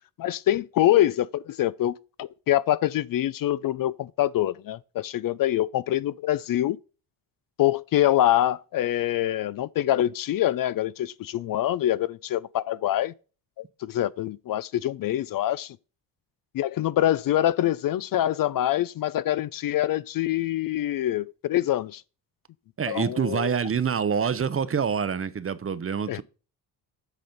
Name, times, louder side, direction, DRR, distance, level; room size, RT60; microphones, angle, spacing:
voice 1, 0.2-6.8 7.6-13.1 13.6-15.8 16.5-22.0 22.9-23.6 26.1-26.2, left 13 dB, 55° left, 0.4 m, -25 dB
voice 2, 22.8-26.2, right 7 dB, 30° right, 0.7 m, -26 dB
8.1 x 4.2 x 5.3 m
supercardioid pair, 60°, 42 cm